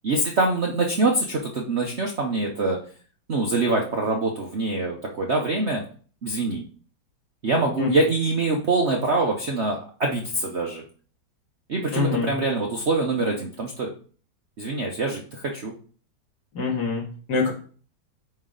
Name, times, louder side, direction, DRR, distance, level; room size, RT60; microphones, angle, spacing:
voice 1, 0.0-2.8 3.3-5.8 6.2-6.6 7.4-10.8 11.7-13.9 14.6-15.7, right 2 dB, 50° right, 0 dB, 0.8 m, -24 dB
voice 2, 11.9-12.3 16.5-17.0 17.3-17.5, left 4 dB, 55° left, -2 dB, 2.3 m, -24 dB
9.0 x 3.3 x 3.8 m, 0.43 s
omnidirectional pair, 2.1 m